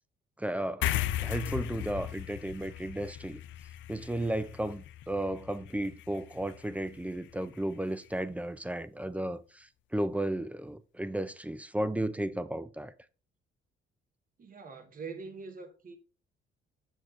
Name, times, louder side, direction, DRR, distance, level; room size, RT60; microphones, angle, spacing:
voice 1, 0.4-0.9 1.2-3.4 3.9-12.9, right 1 dB, 5° right, 0.4 m, -34 dB
sound 1, 0.8-7.6, left 13 dB, 70° left, 0.4 m, -37 dB
voice 2, 14.4-16.0, right 5 dB, 45° right, 1.2 m, -43 dB
6.4 x 6.3 x 2.4 m
cardioid pair, 90°, 20 cm